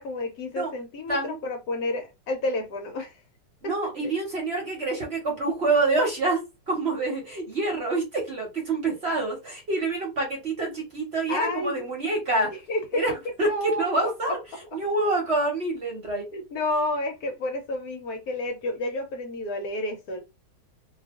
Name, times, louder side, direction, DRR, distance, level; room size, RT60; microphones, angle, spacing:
voice 1, 0.0-3.2 3.6-3.7 4.0-4.1 11.3-11.9 12.5-13.0 13.4-14.4 16.3-20.2, left 1 dB, 65° left, 1.0 m, -30 dB
voice 2, 3.6-12.5 12.9-13.1 13.4-14.4 14.7-16.3, right 2 dB, 45° right, 1.0 m, -27 dB
2.7 x 2.3 x 3.5 m
omnidirectional pair, 1.9 m